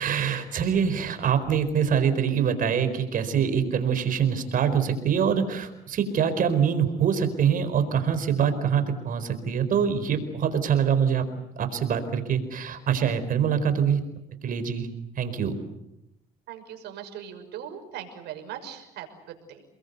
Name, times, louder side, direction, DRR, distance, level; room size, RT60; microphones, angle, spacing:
voice 1, 0.0-11.3 11.6-14.0 14.4-14.9 15.2-15.5, right 7 dB, 55° right, 9 dB, 4.6 m, -24 dB
voice 2, 16.5-19.6, right 9 dB, 80° right, 5 dB, 6.1 m, -40 dB
30.0 x 21.5 x 8.3 m, 0.86 s
cardioid pair, 110°, 17 cm